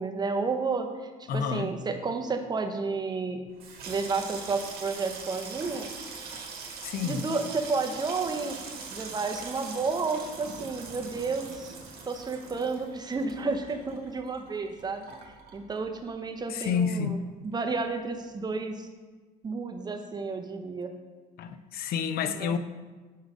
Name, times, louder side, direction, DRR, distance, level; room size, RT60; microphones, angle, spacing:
voice 1, 0.0-3.4 3.8-5.9 7.0-8.6 8.9-11.8 12.1-15.1 15.5-18.9 19.4-20.9 22.3-22.5, right 4 dB, 25° right, 0.7 m, -31 dB
voice 2, 1.3-1.7 6.8-7.2 16.5-17.2 21.4-22.6, left 7 dB, 65° left, 0.4 m, -29 dB
Water tap faucet / Sink (filling or washing), 3.4-16.3 16.6-17.3 17.5-17.8, right 4 dB, 65° right, 1.2 m, -42 dB
6.4 x 4.0 x 4.8 m
cardioid pair, 110°, 17 cm